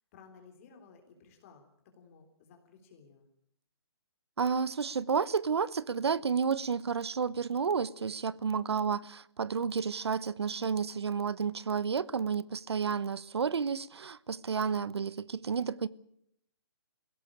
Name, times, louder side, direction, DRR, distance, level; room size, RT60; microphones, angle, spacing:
voice 1, 0.1-1.7 1.9-3.3, left 5 dB, 35° left, 3.4 m, -56 dB
voice 2, 4.4-15.9, right 6 dB, 80° right, 1.0 m, -31 dB
21.0 x 17.0 x 8.8 m
hypercardioid pair, 155°, 13 cm